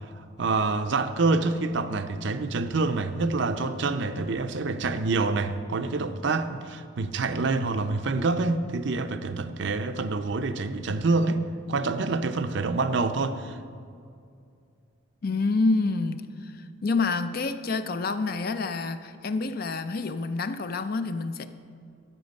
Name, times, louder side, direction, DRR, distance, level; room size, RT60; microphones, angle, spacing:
voice 1, 0.4-11.4 11.7-13.6, right 3 dB, 55° right, 10 dB, 0.5 m, -26 dB
voice 2, 15.2-21.5, left 3 dB, 45° left, 10 dB, 0.5 m, -28 dB
13.0 x 7.8 x 5.3 m, 2.4 s
head